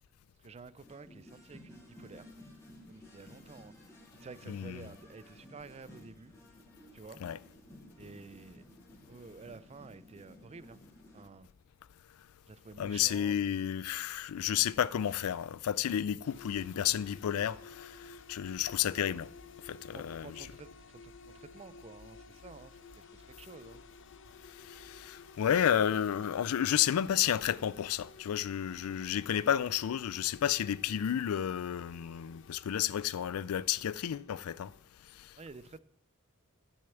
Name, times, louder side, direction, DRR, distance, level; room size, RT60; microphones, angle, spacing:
voice 1, 0.4-2.3 2.9-3.7 4.1-6.3 6.9-7.2 8.0-8.7 9.1-10.8 11.1-11.5 12.5-13.3 19.9-23.8 35.4-35.8, right 4 dB, 30° right, 0.4 m, -51 dB
sound 1, 0.8-11.2, left 1 dB, 10° left, 2.4 m, -55 dB
voice 2, 4.5-4.9 7.2-7.4 12.8-19.3 19.6-20.5 24.6-34.7, left 10 dB, 85° left, 0.4 m, -31 dB
sound 2, 16.2-34.8, left 4 dB, 60° left, 0.7 m, -54 dB
10.0 x 6.5 x 7.0 m
head